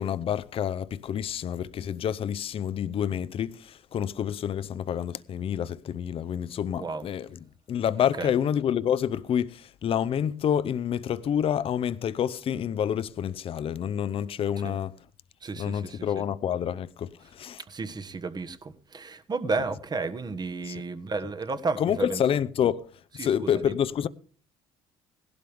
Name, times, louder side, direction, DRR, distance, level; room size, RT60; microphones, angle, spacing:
voice 1, 0.0-7.4 7.7-14.9 15.6-17.6 20.7-20.8 21.8-22.9 23.1-24.1, left 9 dB, 50° left, 0.6 m, -28 dB
voice 2, 15.4-16.2 17.7-22.2 23.2-23.7, right 4 dB, 35° right, 1.3 m, -32 dB
17.0 x 12.0 x 3.5 m
supercardioid pair, 70°, 13 cm